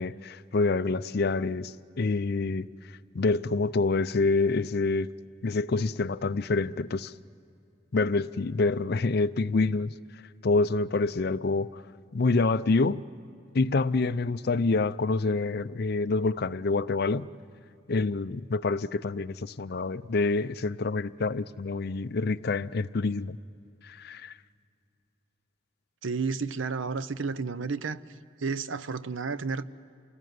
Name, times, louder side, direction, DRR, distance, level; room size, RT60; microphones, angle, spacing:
voice 1, 0.0-2.7 3.1-5.1 5.4-7.1 7.9-9.9 10.4-11.8 12.1-13.0 13.5-17.3 17.9-23.4 23.8-24.3, left 3 dB, 55° left, 0.5 m, -27 dB
voice 2, 26.0-28.0 28.4-29.6, right 4 dB, 80° right, 0.7 m, -31 dB
28.0 x 19.5 x 9.4 m
head